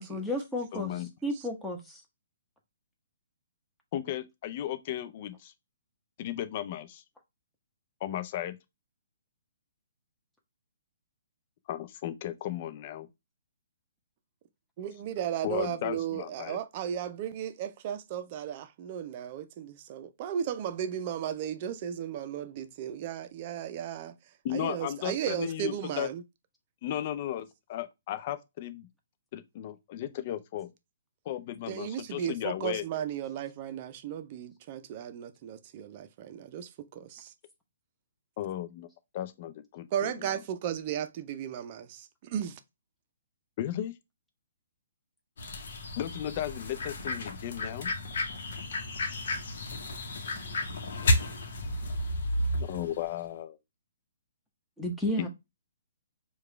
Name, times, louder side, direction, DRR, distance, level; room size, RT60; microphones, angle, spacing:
voice 1, 0.0-0.9 1.2-2.0 54.8-55.3, left 1 dB, 5° left, 0.9 m, -32 dB
voice 2, 0.7-1.1 3.9-5.5 6.2-7.0 8.0-8.6 11.7-13.1 15.4-16.6 24.4-26.1 26.8-28.9 29.3-30.7 31.3-32.8 38.4-38.9 39.1-40.4 43.6-43.9 46.0-47.9 52.5-53.6 55.2-55.3, left 11 dB, 45° left, 0.5 m, -35 dB
voice 3, 14.8-24.1 24.5-26.2 31.7-37.3 39.9-42.6, right 9 dB, 40° right, 0.5 m, -35 dB
sound 1, 45.4-53.1, left 1 dB, 60° left, 1.0 m, -32 dB
4.7 x 2.4 x 3.2 m
figure-of-eight pair, 130°, 0 cm